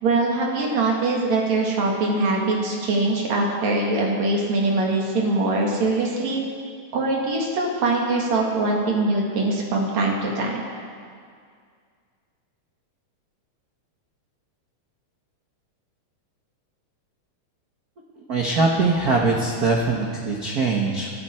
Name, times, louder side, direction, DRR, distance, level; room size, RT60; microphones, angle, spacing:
voice 1, 0.0-6.4 6.9-10.6, right 2 dB, 65° right, -1 dB, 3.2 m, -22 dB
voice 2, 18.3-21.1, right 3 dB, 45° right, -1 dB, 1.2 m, -22 dB
25.0 x 13.0 x 4.4 m, 2.1 s
omnidirectional pair, 3.4 m